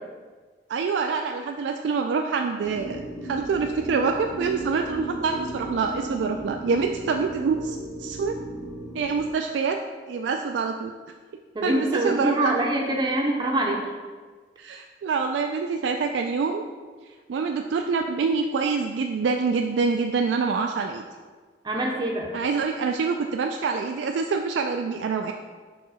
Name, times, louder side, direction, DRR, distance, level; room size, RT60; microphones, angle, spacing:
voice 1, 0.7-8.4 8.9-9.8 10.1-10.9 11.6-12.6 14.6-16.6 17.3-21.0 22.3-25.3, right 5 dB, 85° right, 4 dB, 0.3 m, -26 dB
sound 1, 2.6-9.3, right 2 dB, 80° left, 1.2 m, -36 dB
voice 2, 11.5-13.9 21.6-22.3, right 1 dB, 25° right, 0 dB, 0.5 m, -25 dB
4.7 x 3.7 x 5.4 m, 1.5 s
head